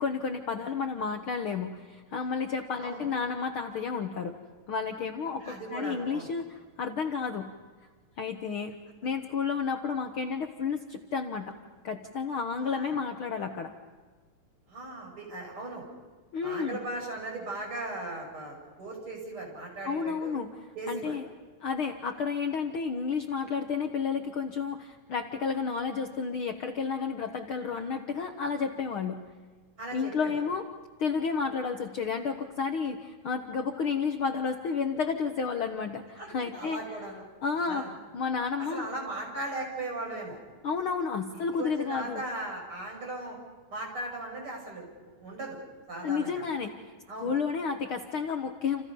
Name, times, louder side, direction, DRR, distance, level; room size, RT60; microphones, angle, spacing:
voice 1, 0.0-4.3 4.7-7.5 8.2-8.7 9.0-11.5 11.8-13.7 16.3-16.8 19.8-20.5 20.9-21.2 21.6-29.2 29.9-30.6 31.0-36.8 37.4-37.9 38.1-38.9 40.6-42.2 46.0-46.7 47.2-48.8, left 5 dB, 85° left, 5 dB, 1.1 m, -31 dB
voice 2, 5.4-6.3 12.6-13.0 14.7-15.9 16.4-20.3 20.7-21.2 29.8-30.4 36.2-37.2 37.7-37.9 38.7-40.4 41.3-43.4 43.7-45.6 45.9-46.5 47.1-47.3, right 2 dB, 35° right, 0 dB, 7.5 m, -38 dB
30.0 x 28.5 x 5.5 m, 1.4 s
omnidirectional pair, 4.1 m